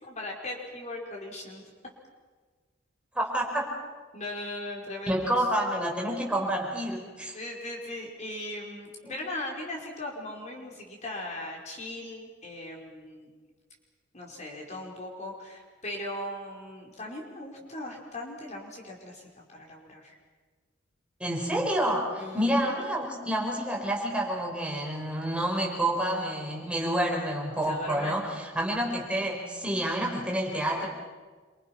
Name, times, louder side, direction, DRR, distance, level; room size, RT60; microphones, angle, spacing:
voice 1, 0.0-1.6 4.1-5.3 7.3-13.3 14.1-20.2 22.1-22.7 27.6-28.2, left 1 dB, 35° left, -1 dB, 4.8 m, -39 dB
voice 2, 3.1-3.6 5.1-7.3 21.2-30.9, right 1 dB, 5° right, -2 dB, 5.2 m, -28 dB
28.0 x 26.5 x 5.9 m, 1.4 s
head